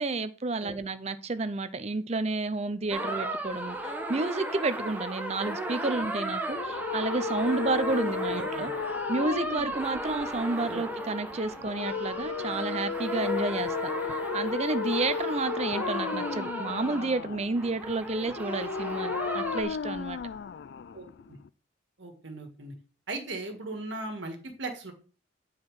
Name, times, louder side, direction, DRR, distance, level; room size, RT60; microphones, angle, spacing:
voice 1, 0.0-8.7 9.1-13.7 14.1-20.2, right 3 dB, 35° right, 0.6 m, -31 dB
sound 1, 2.9-19.6, right 1 dB, 10° right, 1.1 m, -35 dB
sound 2, 6.5-21.5, left 6 dB, 55° left, 0.3 m, -35 dB
voice 2, 8.3-8.7 10.7-10.8 20.9-21.4 22.0-22.7 23.1-24.9, right 2 dB, 65° right, 1.7 m, -38 dB
9.3 x 4.6 x 4.8 m
head